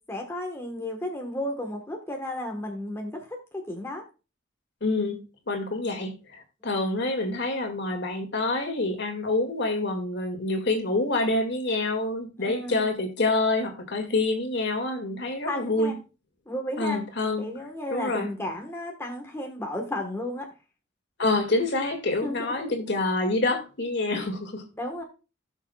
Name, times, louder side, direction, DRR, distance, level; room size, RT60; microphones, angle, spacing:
voice 1, 0.1-4.0 12.4-12.8 15.5-16.0 16.5-17.0 17.4-20.5 22.2-22.9 24.8-25.0, left 1 dB, 10° left, 1.3 m, -33 dB
voice 2, 4.8-5.2 5.5-15.9 16.8-17.5 17.9-18.3 21.2-24.6, left 2 dB, 55° left, 2.1 m, -27 dB
17.5 x 6.4 x 2.3 m
head